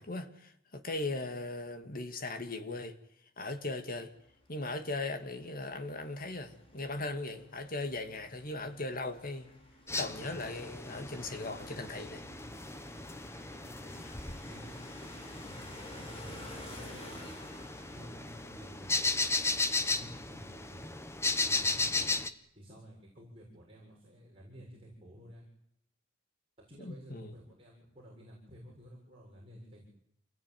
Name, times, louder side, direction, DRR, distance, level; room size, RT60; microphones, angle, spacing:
voice 1, 0.0-3.0 3.4-4.1 4.5-9.5 9.9-12.2 13.9-14.2 26.8-27.3, left 2 dB, 45° left, 2.4 m, -38 dB
sound 1, 4.2-20.4, left 1 dB, 30° left, 5.7 m, -53 dB
sound 2, 9.9-22.3, left 3 dB, 15° left, 1.3 m, -36 dB
voice 2, 13.5-14.0 14.5-14.8 15.4-17.4 17.9-19.3 19.8-21.0 21.4-22.1 22.6-25.4 26.7-29.9, equal, 30° right, 7.3 m, -52 dB
28.5 x 20.0 x 9.5 m
head